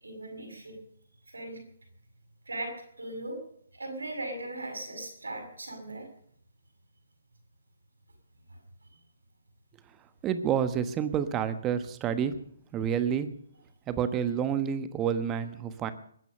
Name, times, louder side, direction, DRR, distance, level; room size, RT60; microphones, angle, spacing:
voice 1, 0.0-0.8 1.3-1.6 2.5-2.7 3.0-3.4 3.7-6.1, right 2 dB, 90° right, 5 dB, 6.9 m, -38 dB
voice 2, 10.2-12.3 12.7-13.3 13.9-15.9, right 8 dB, 15° right, 11 dB, 1.3 m, -29 dB
21.0 x 9.2 x 6.8 m, 0.64 s
hypercardioid pair, 145°, 0 cm